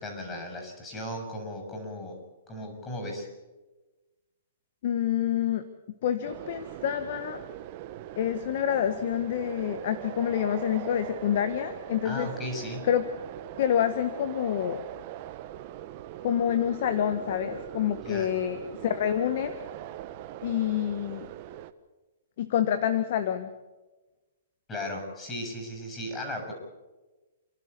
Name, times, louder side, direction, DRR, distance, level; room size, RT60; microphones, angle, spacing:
voice 1, 0.0-2.2 2.5-3.3 12.0-12.9 18.0-18.3 24.7-26.5, left 1 dB, 15° left, 3 dB, 6.8 m, -36 dB
voice 2, 4.8-5.7 6.0-7.4 8.2-12.3 12.9-13.0 13.6-14.8 16.2-19.6 20.4-21.3 22.4-23.5, left 10 dB, 55° left, 11 dB, 1.3 m, -27 dB
sound 1, 6.2-21.7, right 13 dB, 40° right, 1.1 m, -41 dB
29.0 x 12.0 x 8.3 m, 1.1 s
hypercardioid pair, 145°, 0 cm